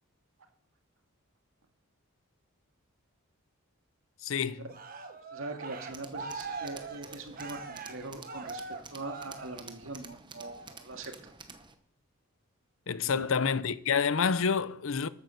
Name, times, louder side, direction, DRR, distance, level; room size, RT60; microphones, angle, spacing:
voice 1, 4.2-4.7 12.9-15.1, left 6 dB, 65° left, 0.6 m, -28 dB
Cheering, 4.7-9.9 10.4-10.8, right 4 dB, 40° right, 1.3 m, -42 dB
voice 2, 5.3-8.6 8.9-11.1 13.1-13.3, right 2 dB, 70° right, 2.1 m, -42 dB
Tools, 5.9-11.7, right 4 dB, 20° right, 0.9 m, -50 dB
13.0 x 9.0 x 6.6 m
head